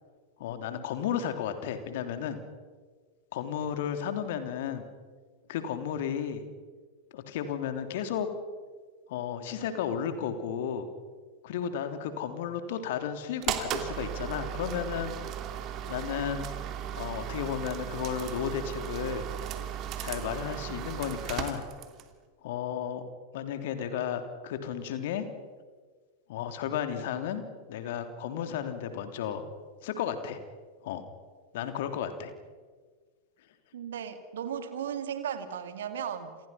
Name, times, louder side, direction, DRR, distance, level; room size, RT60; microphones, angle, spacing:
voice 1, 0.4-2.4 3.3-4.8 5.5-6.4 7.1-8.3 9.1-10.9 11.4-15.1 15.9-16.5 16.9-19.3 20.0-21.6 22.4-23.1 23.3-25.3 26.3-27.4 27.7-29.4 29.8-30.4 30.8-31.0 31.5-32.3, left 8 dB, 55° left, 8 dB, 3.2 m, -33 dB
sound 1, 13.4-22.1, right 10 dB, 35° right, 2.8 m, -36 dB
voice 2, 33.7-36.4, right 8 dB, 60° right, 9 dB, 2.5 m, -36 dB
30.0 x 28.5 x 5.8 m, 1.5 s
figure-of-eight pair, 90°, 0 cm